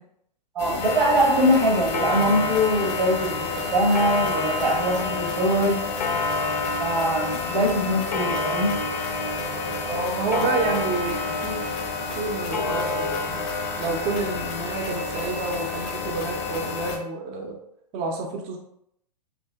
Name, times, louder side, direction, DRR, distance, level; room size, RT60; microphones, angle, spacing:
voice 1, 0.5-5.8 6.8-8.8, equal, 80° right, 1 dB, 0.8 m, -22 dB
sound 1, 0.6-17.0, left 4 dB, 30° left, 0.5 m, -32 dB
Clock, 0.8-16.9, left 3 dB, 90° left, 0.4 m, -30 dB
voice 2, 9.8-11.7 12.1-13.5 13.8-17.6 17.9-18.6, right 3 dB, 30° right, 1 dB, 0.4 m, -29 dB
2.7 x 2.6 x 2.2 m, 0.73 s
figure-of-eight pair, 105°, 21 cm